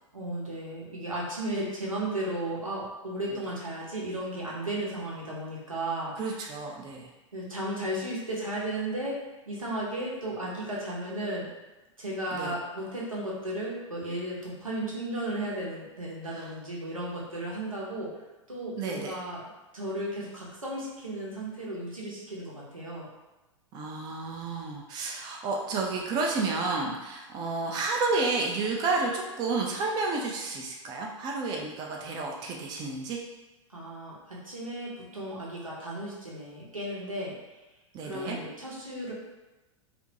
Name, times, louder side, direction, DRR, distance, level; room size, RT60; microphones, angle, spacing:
voice 1, 0.1-6.1 7.3-11.5 12.0-18.1 18.5-19.4 19.7-23.1 33.7-37.3 38.0-39.1, right 1 dB, 90° right, -6 dB, 0.8 m, -34 dB
voice 2, 6.2-7.1 12.3-12.6 16.3-16.5 18.8-19.1 23.7-33.2 37.9-38.4, right 3 dB, 25° right, 0 dB, 0.4 m, -31 dB
2.5 x 2.1 x 2.7 m, 1.1 s
figure-of-eight pair, 95°, 17 cm